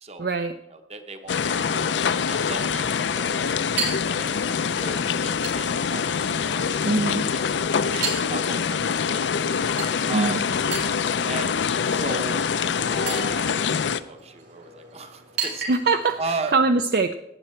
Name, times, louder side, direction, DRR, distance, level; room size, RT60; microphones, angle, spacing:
voice 1, 0.2-0.5 6.9-7.2 10.1-10.4 15.7-16.2 16.5-17.1, right 3 dB, 55° right, 8 dB, 0.4 m, -22 dB
voice 2, 0.7-1.9 2.3-2.9 3.4-3.5 4.2-6.2 6.7-6.8 7.6-8.0 8.3-9.6 10.1-10.4 11.3-11.6 11.8-12.5 12.8-13.6 14.1-15.7 16.2-16.6, right 3 dB, 35° right, 7 dB, 1.0 m, -36 dB
Chink clink, 1.2-16.2, right 5 dB, 75° right, 5.9 m, -37 dB
sound 1, 1.3-14.0, left 6 dB, 80° left, 0.5 m, -25 dB
15.0 x 9.1 x 4.4 m, 0.85 s
head